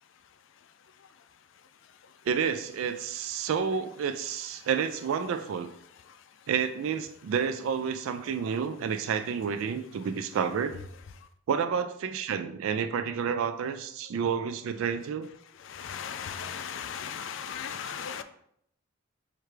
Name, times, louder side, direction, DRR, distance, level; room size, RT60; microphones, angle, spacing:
voice 1, 2.3-5.7 6.5-10.8 11.5-15.3, right 7 dB, 70° right, 0.3 m, -30 dB
voice 2, 15.6-18.2, left 7 dB, 60° left, 0.3 m, -37 dB
4.5 x 2.3 x 4.8 m
head